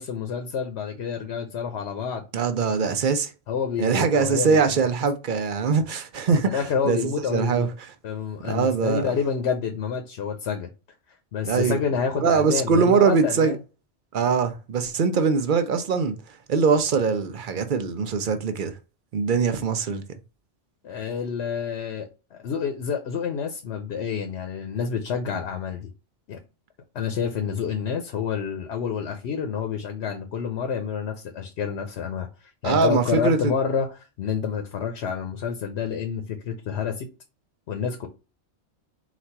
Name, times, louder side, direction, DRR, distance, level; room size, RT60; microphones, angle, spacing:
voice 1, 0.0-2.2 3.5-4.8 6.3-7.7 8.0-10.7 11.3-13.6 20.8-25.9 26.3-26.4 26.9-32.3 32.6-37.1 37.7-38.1, left 6 dB, 70° left, 0.9 m, -28 dB
voice 2, 2.3-3.3 3.8-7.0 7.3-7.7 8.4-9.1 11.4-11.8 12.2-13.6 14.1-16.2 16.5-18.7 19.1-20.0 32.6-33.5, right 5 dB, 55° right, 0.7 m, -22 dB
4.1 x 2.5 x 4.4 m
omnidirectional pair, 1.2 m